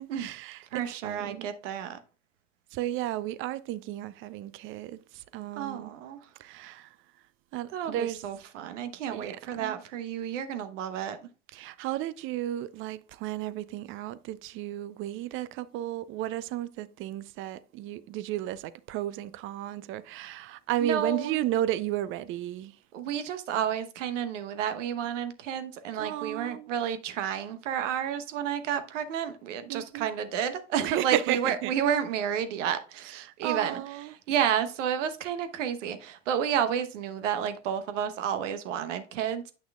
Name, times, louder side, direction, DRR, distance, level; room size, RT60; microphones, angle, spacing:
voice 1, 0.0-1.5 2.7-5.9 6.4-6.9 7.5-8.2 9.1-9.8 11.5-22.8 26.0-26.7 29.7-30.1 30.8-31.7 33.2-34.1, right 13 dB, 35° right, 0.5 m, -33 dB
voice 2, 0.7-2.0 5.5-6.3 7.7-11.2 20.8-21.4 22.9-33.8 34.1-39.5, right 9 dB, 65° right, 1.0 m, -31 dB
8.4 x 6.0 x 2.3 m
hypercardioid pair, 90°, 39 cm